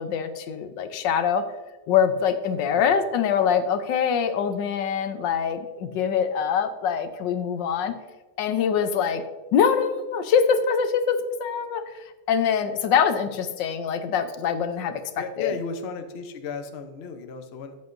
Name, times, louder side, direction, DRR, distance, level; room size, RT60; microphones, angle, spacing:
voice 1, 0.0-1.4 1.9-7.9 8.4-9.2 9.5-11.8 12.3-15.0 15.4-15.5, left 7 dB, 80° left, 10 dB, 1.4 m, -24 dB
voice 2, 15.2-17.8, left 5 dB, 50° left, 7 dB, 0.8 m, -35 dB
13.0 x 8.8 x 2.6 m, 1.3 s
omnidirectional pair, 2.0 m